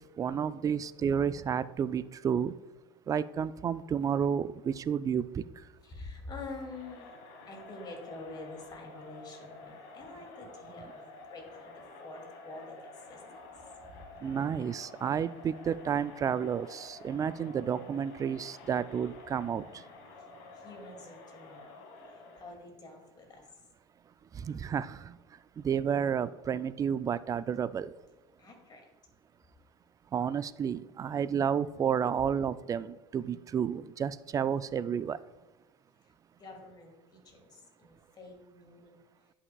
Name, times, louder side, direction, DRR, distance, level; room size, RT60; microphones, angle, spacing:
voice 1, 0.2-2.5 3.1-5.4 14.2-19.6 24.3-25.1 25.6-27.9 30.1-35.2, right 7 dB, 30° right, 16 dB, 0.3 m, -31 dB
voice 2, 5.8-7.1 7.5-13.2 13.9-14.0 20.5-21.8 22.4-23.5 28.4-28.9 36.4-39.0, left 3 dB, 35° left, 1 dB, 2.3 m, -47 dB
Crowd, 6.5-22.6, left 3 dB, 70° left, 1.5 m, -50 dB
10.5 x 5.6 x 2.3 m, 1.2 s
supercardioid pair, 95°, 12 cm